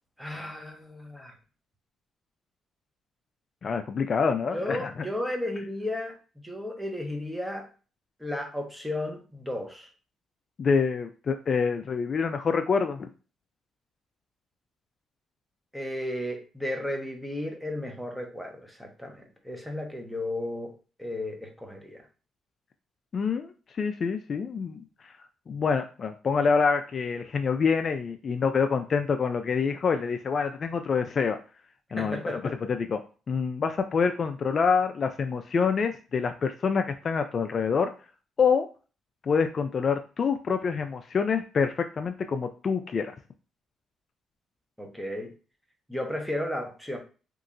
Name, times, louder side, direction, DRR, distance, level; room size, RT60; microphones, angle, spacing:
voice 1, 0.2-1.3 4.5-6.1 6.4-7.7 8.2-9.9 15.7-22.0 32.0-32.5 44.8-45.3 45.9-47.0, left 1 dB, ahead, 2 dB, 0.8 m, -34 dB
voice 2, 3.6-5.0 10.6-13.1 23.1-24.8 25.5-31.4 31.9-33.0 33.3-37.9 38.4-38.7 39.2-43.1, left 5 dB, 45° left, 7 dB, 0.3 m, -26 dB
3.0 x 2.8 x 2.5 m, 0.35 s
cardioid pair, 90°, 0 cm